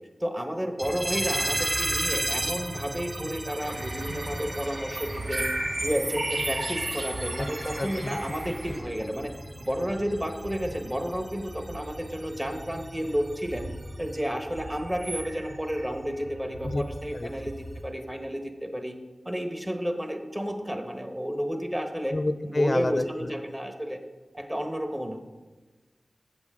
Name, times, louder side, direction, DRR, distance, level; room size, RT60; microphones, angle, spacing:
voice 1, 0.2-5.5 5.8-9.3 9.6-13.7 14.0-17.5 17.8-18.9 19.2-22.1 22.4-24.0 24.3-25.2, equal, 15° right, 5 dB, 1.1 m, -31 dB
sound 1, 0.8-17.8, right 1 dB, 60° right, 1.1 m, -34 dB
sound 2, 3.6-8.8, right 1 dB, 80° right, 1.4 m, -41 dB
voice 2, 7.8-8.2 16.6-16.8 17.1-17.3 22.1-23.3, left 2 dB, 45° left, 12 dB, 0.4 m, -28 dB
7.9 x 7.2 x 3.6 m, 1.2 s
cardioid pair, 45°, 0 cm